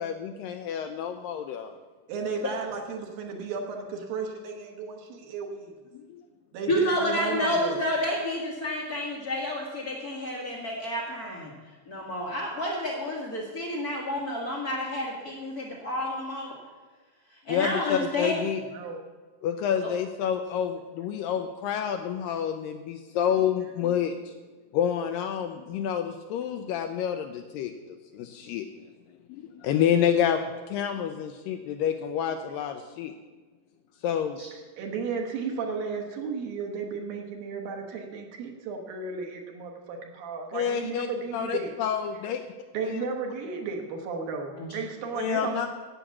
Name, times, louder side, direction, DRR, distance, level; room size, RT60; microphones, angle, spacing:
voice 1, 0.0-1.7 5.9-6.2 17.5-18.6 19.4-24.2 24.7-28.7 29.3-33.1 34.0-34.4 40.5-41.1 41.3-42.4 42.8-43.0 45.1-45.7, left 9 dB, 80° left, 6 dB, 2.1 m, -28 dB
voice 2, 2.1-5.7 6.5-7.8 18.7-19.0 34.8-41.7 42.7-45.7, right 5 dB, 70° right, 2 dB, 2.8 m, -34 dB
voice 3, 6.7-11.5 11.9-16.5 17.5-18.4 19.8-19.9 34.4-34.5 44.6-44.7, left 1 dB, 60° left, -2 dB, 0.9 m, -30 dB
10.0 x 8.6 x 7.1 m, 1.4 s
omnidirectional pair, 4.4 m